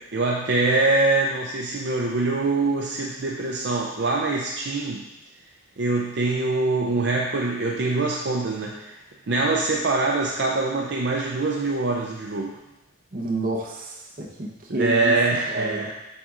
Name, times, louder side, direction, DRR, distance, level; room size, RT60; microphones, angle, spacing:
voice 1, 0.0-5.0 5.8-9.0 9.3-12.6 14.8-15.9, right 3 dB, 60° right, -1 dB, 0.5 m, -24 dB
voice 2, 13.1-15.2 15.5-15.8, right 1 dB, 45° right, -1 dB, 0.9 m, -29 dB
7.5 x 5.3 x 2.5 m, 0.96 s
head